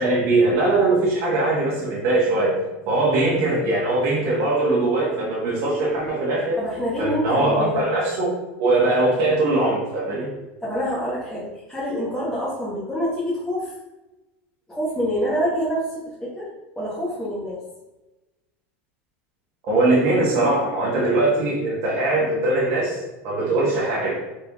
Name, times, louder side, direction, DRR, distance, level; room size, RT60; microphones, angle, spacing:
voice 1, 0.0-2.6 2.9-6.6 7.0-8.3 8.6-10.3 19.7-24.2, right 2 dB, 55° right, -6 dB, 1.4 m, -21 dB
voice 2, 6.6-7.9 10.6-13.7 14.7-15.8 16.2-16.5 16.7-17.6, equal, 10° left, -10 dB, 1.5 m, -26 dB
4.3 x 3.3 x 3.6 m, 1.0 s
supercardioid pair, 110°, 7 cm